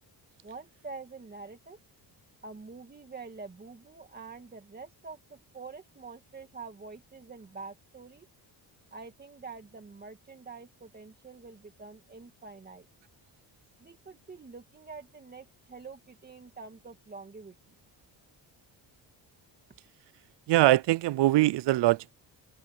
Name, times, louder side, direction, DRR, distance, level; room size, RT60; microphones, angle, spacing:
voice 1, 0.4-1.8 2.4-8.3 8.9-12.9 13.8-17.5, right 4 dB, 20° right, 2.1 m, -46 dB
voice 2, 20.5-22.1, right 16 dB, 70° right, 0.6 m, -22 dB
open air
cardioid pair, 165°, 43 cm